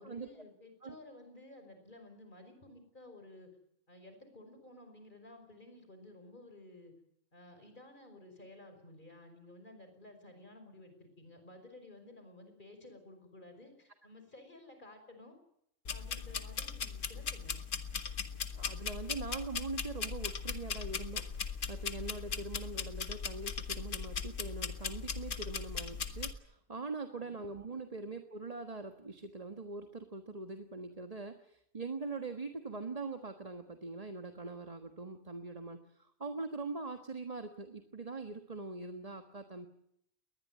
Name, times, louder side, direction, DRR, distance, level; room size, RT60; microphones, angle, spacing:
voice 1, 0.0-3.5 3.9-6.9 7.3-15.4 15.9-17.6 27.2-27.5, left 2 dB, 40° left, 7 dB, 5.5 m, -54 dB
sound 1, 15.9-26.3, left 6 dB, 75° left, 1.8 m, -39 dB
voice 2, 18.3-39.7, right 3 dB, 30° right, 6 dB, 1.5 m, -42 dB
21.0 x 20.0 x 9.6 m, 0.74 s
omnidirectional pair, 1.3 m